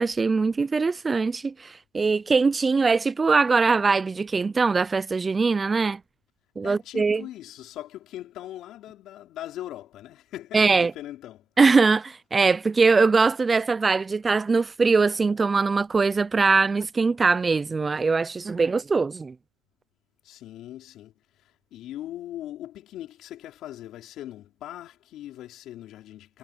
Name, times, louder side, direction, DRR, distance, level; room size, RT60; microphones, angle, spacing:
voice 1, 0.0-6.0 6.6-7.2 10.5-10.9 11.6-19.3, right 4 dB, 15° right, 0.3 m, -22 dB
voice 2, 6.6-11.5 20.2-26.4, left 13 dB, 50° left, 5.0 m, -40 dB
supercardioid pair, 130°, 0 cm